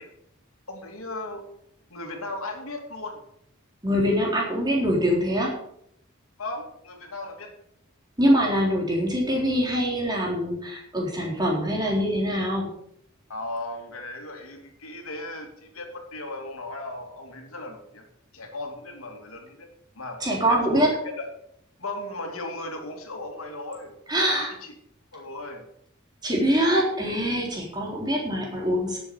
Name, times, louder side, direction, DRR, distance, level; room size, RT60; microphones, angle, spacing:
voice 1, 0.7-1.4 1.9-3.2 6.4-7.5 13.3-18.1 18.3-19.7 19.9-20.2 20.5-20.9 21.2-21.3 21.8-24.7 25.1-25.6, left 2 dB, 85° left, 3 dB, 2.6 m, -36 dB
voice 2, 3.8-5.5 8.2-12.7 20.2-20.9 24.1-24.5 26.2-29.0, equal, 20° right, -2 dB, 3.8 m, -24 dB
12.0 x 7.9 x 6.8 m, 0.71 s
head